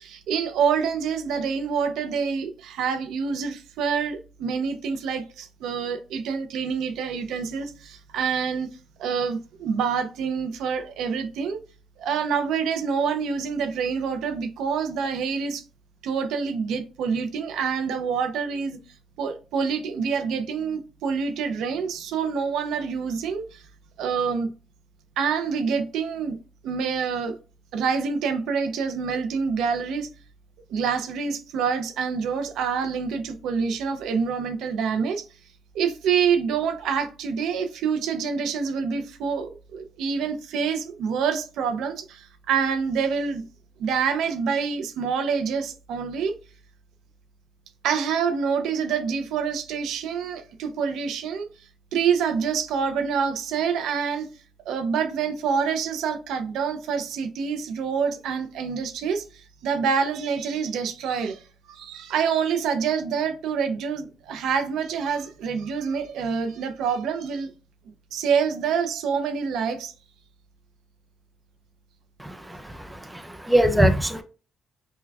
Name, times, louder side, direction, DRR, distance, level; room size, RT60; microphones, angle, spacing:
voice 1, 0.0-8.7 9.0-11.6 12.0-15.6 16.0-18.8 19.2-23.6 24.0-24.5 25.2-26.4 26.6-27.3 27.7-30.1 30.7-35.3 35.7-43.4 43.8-46.4 47.8-51.5 51.9-54.3 54.7-61.4 61.7-67.5 68.1-69.9, right 6 dB, 85° right, 0.5 m, -26 dB
voice 2, 72.2-74.2, right 1 dB, 10° right, 0.5 m, -23 dB
5.7 x 2.2 x 2.3 m
cardioid pair, 90°, 0 cm